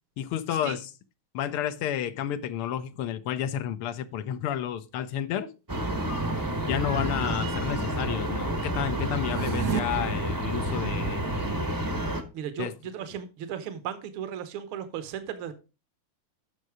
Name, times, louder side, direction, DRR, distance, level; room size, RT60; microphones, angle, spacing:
voice 1, 0.2-0.9 1.3-5.5 6.6-11.3 12.6-12.7, left 10 dB, 85° left, 1.7 m, -31 dB
sound 1, 5.7-12.2, right 1 dB, 15° right, 0.6 m, -29 dB
sound 2, 9.2-9.8, right 11 dB, 90° right, 0.7 m, -30 dB
voice 2, 12.3-15.5, right 9 dB, 70° right, 1.8 m, -36 dB
9.4 x 6.5 x 4.8 m
omnidirectional pair, 2.4 m